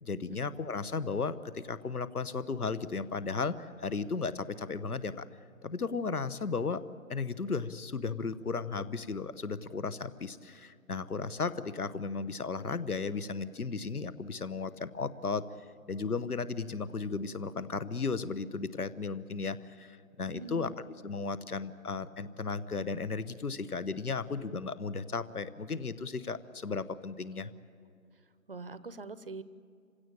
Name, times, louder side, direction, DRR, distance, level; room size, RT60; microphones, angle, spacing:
voice 1, 0.0-5.2 5.6-6.8 7.1-15.4 15.9-27.5, left 4 dB, 80° left, 15 dB, 1.2 m, -35 dB
voice 2, 20.3-20.7 27.4-27.5 28.5-29.4, right 3 dB, 40° right, 15 dB, 0.7 m, -43 dB
26.5 x 16.5 x 8.9 m, 2.4 s
figure-of-eight pair, 160°, 44 cm